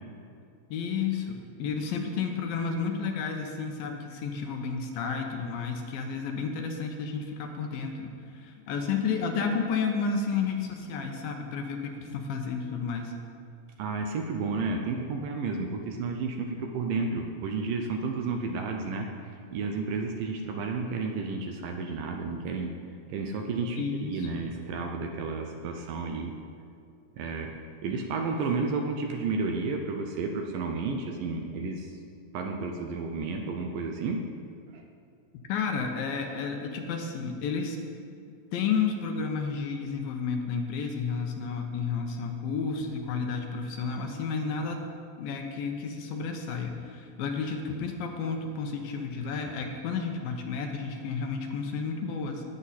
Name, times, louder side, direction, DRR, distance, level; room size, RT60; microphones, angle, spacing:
voice 1, 0.7-13.1 23.8-24.5 35.5-37.8 38.5-44.9 45.2-52.4, left 5 dB, 75° left, 3 dB, 2.6 m, -31 dB
voice 2, 13.8-22.7 23.1-26.3 27.2-27.5 27.8-32.0 32.3-34.2 34.7-34.8, right 4 dB, 75° right, 3 dB, 2.2 m, -32 dB
19.0 x 7.9 x 4.3 m, 2.4 s
omnidirectional pair, 4.5 m